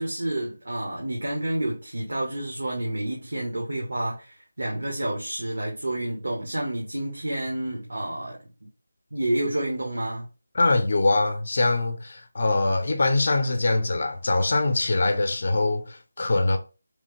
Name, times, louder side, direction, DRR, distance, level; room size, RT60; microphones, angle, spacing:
voice 1, 0.0-8.4 9.1-10.3, right 1 dB, 80° right, 0.9 m, -29 dB
voice 2, 10.5-16.6, left 2 dB, 50° left, 0.5 m, -23 dB
3.0 x 2.0 x 3.0 m
figure-of-eight pair, 170°, 0 cm